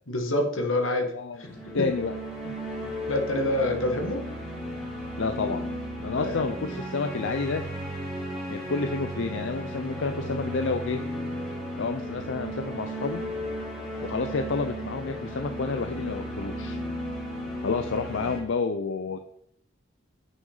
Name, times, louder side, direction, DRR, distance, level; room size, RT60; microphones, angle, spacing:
voice 1, 0.1-1.1 1.4-1.8 3.1-4.2 6.1-6.4, left 1 dB, 85° left, 4 dB, 1.6 m, -27 dB
voice 2, 1.1-2.1 2.4-2.5 5.2-5.7 6.0-7.6 8.5-11.0 11.8-13.2 14.0-16.8 17.6-19.2, left 4 dB, 65° left, 7 dB, 0.5 m, -30 dB
sound 1, 1.4-18.4, equal, 5° right, 2.9 m, -35 dB
9.3 x 6.1 x 3.9 m, 0.69 s
head